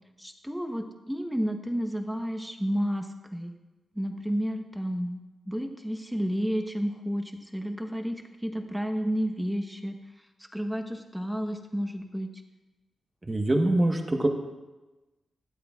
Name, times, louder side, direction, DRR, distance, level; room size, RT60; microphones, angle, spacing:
voice 1, 0.2-3.6 3.9-10.0 10.5-12.3, equal, 5° right, 5 dB, 1.1 m, -31 dB
voice 2, 13.3-14.3, right 1 dB, 25° right, 3 dB, 1.2 m, -24 dB
22.0 x 8.2 x 2.4 m, 1.1 s
cardioid pair, 95°, 0 cm